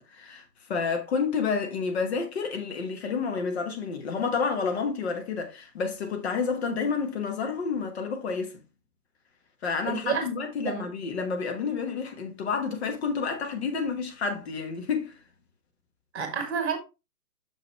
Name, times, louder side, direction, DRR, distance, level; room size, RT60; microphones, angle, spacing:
voice 1, 0.0-8.6 9.6-15.2, left 5 dB, 40° left, 1.4 m, -30 dB
voice 2, 9.9-10.3 10.6-10.9 16.1-16.8, right 6 dB, 40° right, 1.7 m, -29 dB
6.4 x 6.0 x 3.2 m
figure-of-eight pair, 135°, 49 cm